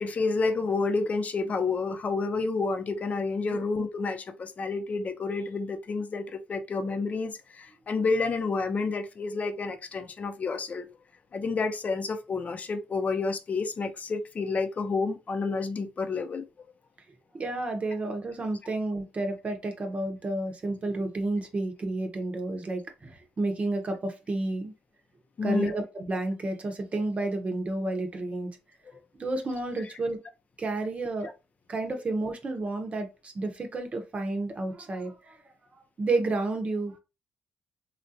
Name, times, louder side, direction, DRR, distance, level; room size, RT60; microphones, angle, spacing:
voice 1, 0.0-10.9 11.3-16.4 25.4-25.8, left 4 dB, 45° left, 0.6 m, -29 dB
voice 2, 17.3-24.7 25.4-28.5 29.2-30.2 30.6-31.3 31.7-35.4 36.0-37.0, right 2 dB, 40° right, 0.8 m, -31 dB
3.2 x 2.4 x 2.7 m
supercardioid pair, 60°, 3 cm